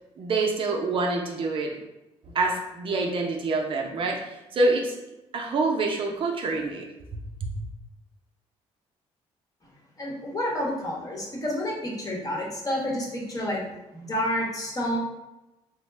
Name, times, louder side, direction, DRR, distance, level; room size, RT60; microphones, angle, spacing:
voice 1, 0.2-1.7 2.3-4.9 5.3-6.9 7.4-7.7, right 3 dB, 50° right, 1 dB, 0.5 m, -26 dB
voice 2, 10.0-13.6 13.9-15.0, left 1 dB, 30° left, -3 dB, 1.0 m, -29 dB
3.3 x 2.1 x 3.2 m, 0.98 s
cardioid pair, 100°, 11 cm